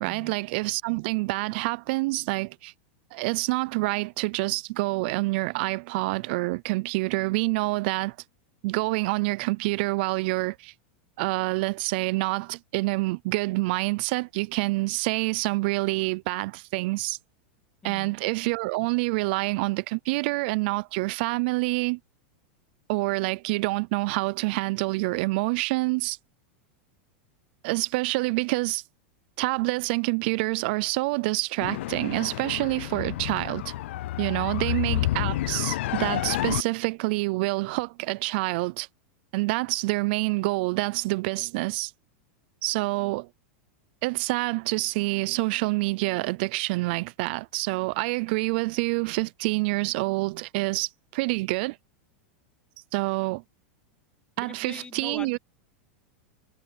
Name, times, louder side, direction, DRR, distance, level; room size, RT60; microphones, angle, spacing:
voice 1, 0.0-2.7 3.1-8.2 8.6-10.7 11.2-17.2 17.8-22.0 22.9-26.2 27.6-28.8 29.4-33.7 34.2-38.9 39.3-41.9 42.6-43.3 44.0-51.8 52.9-53.4 54.4-55.4, right 24 dB, 55° right, 0.4 m, -27 dB
voice 2, 17.8-18.1 34.5-34.7 54.4-55.4, left 5 dB, 15° left, 0.9 m, -43 dB
sound 1, 31.6-36.6, left 15 dB, 75° left, 0.4 m, -29 dB
supercardioid pair, 135°, 6 cm